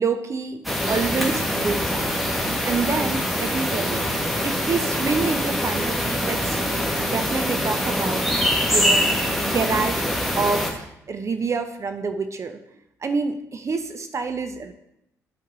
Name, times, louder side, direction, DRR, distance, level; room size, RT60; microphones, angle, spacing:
voice 1, 0.0-4.1 4.4-6.6 7.0-10.0 10.4-12.6 13.0-14.7, right 4 dB, 35° right, 8 dB, 0.7 m, -27 dB
sound 1, 0.6-10.7, equal, ahead, 1.6 m, -24 dB
10.0 x 5.4 x 3.7 m, 0.81 s
figure-of-eight pair, 45°, 8 cm